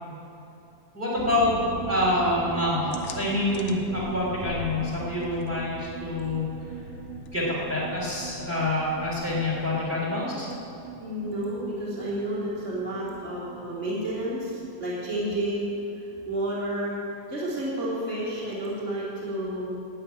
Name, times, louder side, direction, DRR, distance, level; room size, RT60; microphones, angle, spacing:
voice 1, 0.9-1.6 1.9-6.5 7.3-10.5, left 1 dB, 15° right, -4 dB, 3.4 m, -27 dB
sound 1, 1.2-16.5 16.8-16.9 17.2-17.3, right 5 dB, 75° right, 3.6 m, -41 dB
sound 2, 2.9-10.1, left 5 dB, 70° left, 2.0 m, -43 dB
voice 2, 11.0-15.7 16.2-16.9 17.3-19.7, right 1 dB, 5° left, -9 dB, 2.7 m, -30 dB
12.0 x 9.6 x 8.8 m, 2.7 s
omnidirectional pair, 4.1 m